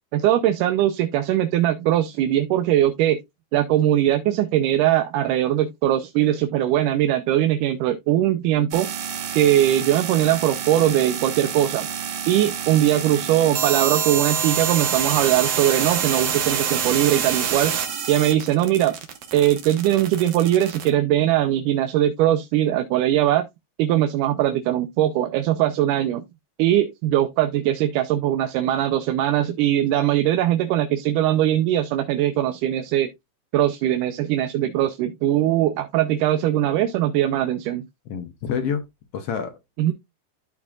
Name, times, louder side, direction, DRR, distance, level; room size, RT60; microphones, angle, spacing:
voice 1, 0.1-3.2 3.5-8.9 9.4-11.9 12.3-17.8 18.1-19.0 19.3-23.5 23.8-26.3 26.6-33.1 33.5-37.8 39.8-39.9, right 12 dB, 85° right, 2.2 m, -21 dB
sound 1, 8.7-20.9, right 8 dB, 60° right, 2.2 m, -27 dB
voice 2, 38.1-38.9 39.1-39.6, left 7 dB, 65° left, 1.6 m, -27 dB
13.0 x 4.7 x 2.4 m
omnidirectional pair, 3.6 m